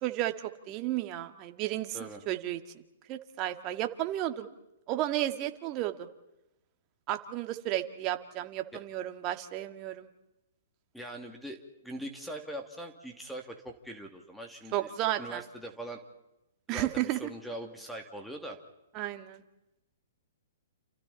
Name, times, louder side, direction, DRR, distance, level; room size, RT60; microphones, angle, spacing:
voice 1, 0.0-2.6 3.1-4.5 4.9-6.1 7.1-10.1 14.7-15.4 16.7-17.3 18.9-19.4, right 14 dB, 35° right, 7 dB, 2.2 m, -33 dB
voice 2, 10.9-11.6 11.8-14.9 15.2-16.0 16.7-18.6, right 1 dB, ahead, 3 dB, 2.6 m, -41 dB
30.0 x 28.5 x 4.3 m, 0.92 s
hypercardioid pair, 125°, 0 cm